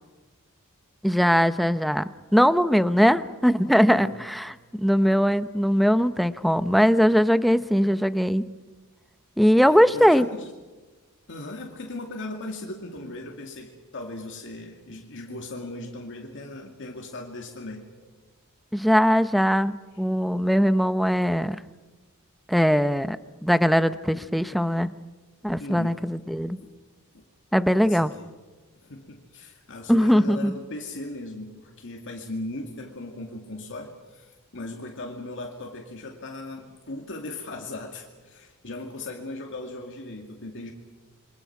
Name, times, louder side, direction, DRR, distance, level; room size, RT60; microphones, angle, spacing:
voice 1, 1.0-8.4 9.4-10.3 18.7-21.6 22.5-23.2 23.4-24.9 25.4-26.6 27.5-28.1 29.9-30.5, equal, ahead, 12 dB, 0.7 m, -20 dB
voice 2, 9.6-10.5 11.3-18.1 19.9-20.0 25.6-26.0 26.6-26.7 27.1-27.2 27.8-28.3 28.8-40.7, left 2 dB, 60° left, 1 dB, 2.4 m, -38 dB
28.0 x 24.0 x 6.0 m, 1.2 s
head